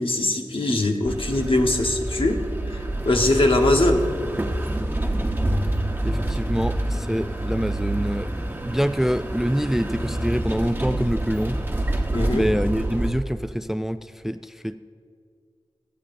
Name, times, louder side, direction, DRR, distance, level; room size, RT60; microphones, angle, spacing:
voice 1, 0.0-2.4 2.7-4.1 12.1-12.5, left 2 dB, 70° left, 3 dB, 1.1 m, -21 dB
sound 1, 1.0-13.1, right 1 dB, 20° right, 1.0 m, -27 dB
voice 2, 6.0-8.3 8.6-11.6 12.3-14.8, equal, 5° right, 11 dB, 0.3 m, -25 dB
23.5 x 8.5 x 2.6 m, 2.2 s
wide cardioid pair, 55°, 9 cm